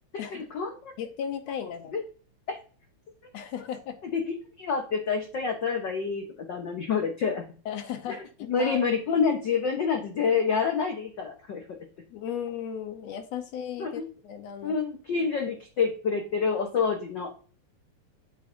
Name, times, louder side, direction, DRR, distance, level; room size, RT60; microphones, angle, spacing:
voice 1, 0.3-0.9 1.9-2.0 2.5-2.6 4.1-7.4 8.1-8.2 8.5-11.6 13.8-14.1 14.6-17.3, left 5 dB, 85° left, 3 dB, 0.9 m, -27 dB
voice 2, 1.0-2.0 3.3-4.0 7.7-8.8 12.1-14.8, left 8 dB, 70° left, 7 dB, 1.9 m, -36 dB
8.0 x 7.5 x 2.6 m, 0.40 s
omnidirectional pair, 3.5 m